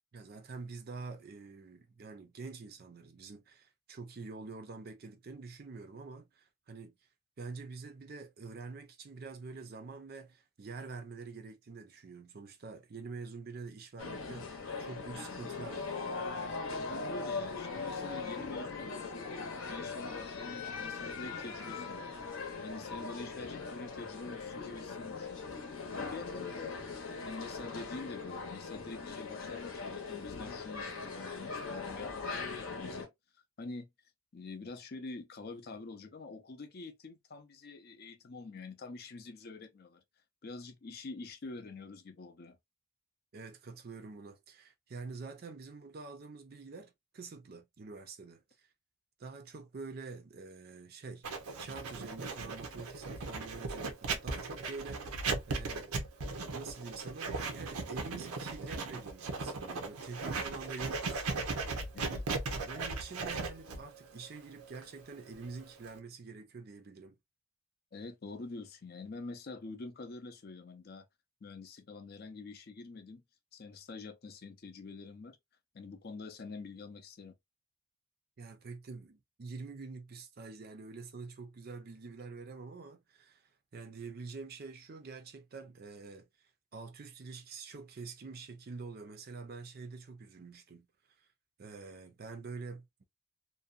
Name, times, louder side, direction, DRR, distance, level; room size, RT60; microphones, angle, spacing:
voice 1, 0.1-6.9 7.4-16.1 43.3-48.4 49.2-51.2 51.6-55.9 56.5-61.2 62.7-67.1 78.4-83.4 83.7-90.9 91.2-91.3 91.6-93.0, right 4 dB, 45° right, 0.5 m, -46 dB
sound 1, 14.0-33.1, left 4 dB, 70° left, 0.8 m, -40 dB
voice 2, 16.8-19.2 19.7-25.5 25.9-33.1 33.6-33.9 34.3-40.0 40.4-42.6 61.9-62.4 67.9-71.1 71.4-73.2 73.5-75.4 75.7-77.4, left 3 dB, 45° left, 0.4 m, -46 dB
Writing, 51.2-66.0, right 3 dB, 90° right, 0.6 m, -38 dB
2.6 x 2.1 x 2.4 m
head